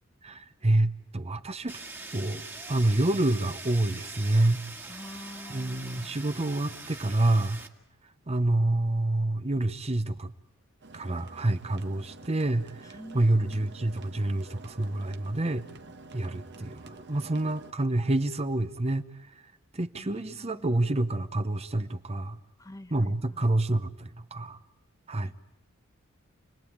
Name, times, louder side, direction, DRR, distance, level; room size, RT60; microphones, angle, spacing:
voice 1, 0.2-1.8 2.1-4.6 5.5-7.6 8.3-10.3 10.9-15.7 16.1-19.1 19.7-22.4 22.9-24.6 25.1-25.3, right 1 dB, 30° right, 11 dB, 0.9 m, -27 dB
Fire, 1.7-7.7, right 3 dB, 10° right, 1.8 m, -43 dB
voice 2, 4.9-6.2 12.9-13.8 19.9-21.0 22.6-23.5 25.2-25.3, left 1 dB, 15° left, 10 dB, 0.9 m, -46 dB
sound 1, 10.8-17.7, right 3 dB, 55° right, 1.4 m, -48 dB
29.5 x 20.5 x 8.8 m, 0.89 s
head